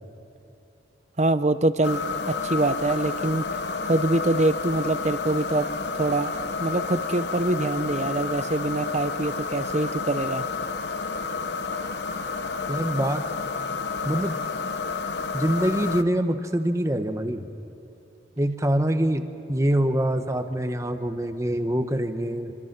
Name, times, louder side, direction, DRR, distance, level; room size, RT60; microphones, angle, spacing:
voice 1, 1.2-2.0 2.3-3.5 3.8-5.7 5.9-6.3 6.6-10.5, right 2 dB, 40° right, 12 dB, 0.8 m, -24 dB
sound 1, 1.8-16.0, left 4 dB, 65° left, 1.0 m, -30 dB
voice 2, 12.7-13.3 14.0-14.4 15.3-17.4 18.4-19.2 19.5-22.5, right 1 dB, 15° right, 7 dB, 1.2 m, -24 dB
26.0 x 26.0 x 6.1 m, 3.0 s
head